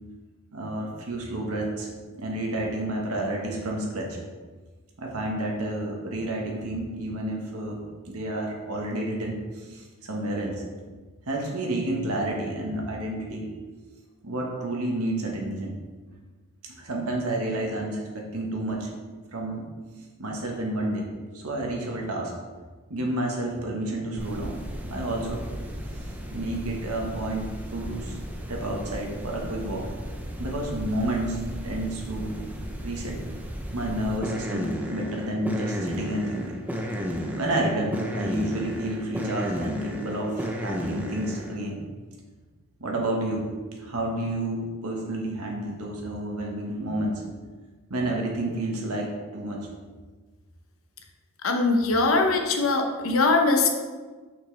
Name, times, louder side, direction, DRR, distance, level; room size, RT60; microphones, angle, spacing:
voice 1, 0.5-1.9 2.2-4.2 5.0-10.6 11.3-13.5 14.2-15.7 16.6-18.9 19.3-19.7 20.2-21.1 21.3-22.3 22.9-24.6 24.9-25.5 26.3-28.2 28.5-29.9 30.4-32.5 32.8-33.2 33.7-36.6 37.3-41.8 42.8-43.5 43.8-47.2 47.9-49.7, right 1 dB, 85° right, 0 dB, 1.4 m, -30 dB
sound 1, 24.2-41.6, equal, 5° right, 0.5 m, -34 dB
voice 2, 51.4-53.7, left 3 dB, 65° left, 4 dB, 0.8 m, -21 dB
6.2 x 5.9 x 3.3 m, 1.4 s
head